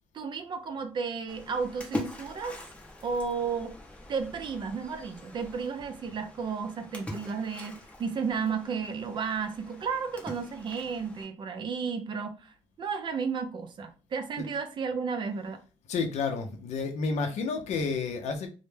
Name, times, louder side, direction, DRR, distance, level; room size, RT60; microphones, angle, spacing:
voice 1, 0.1-2.6 3.0-3.8 4.1-15.6, right 5 dB, 40° right, 0.4 m, -33 dB
Splash splatter, 1.3-11.2, left 1 dB, 10° left, 0.7 m, -43 dB
voice 2, 15.9-18.5, left 4 dB, 70° left, 0.5 m, -30 dB
2.1 x 2.0 x 3.1 m
cardioid pair, 115°, 12 cm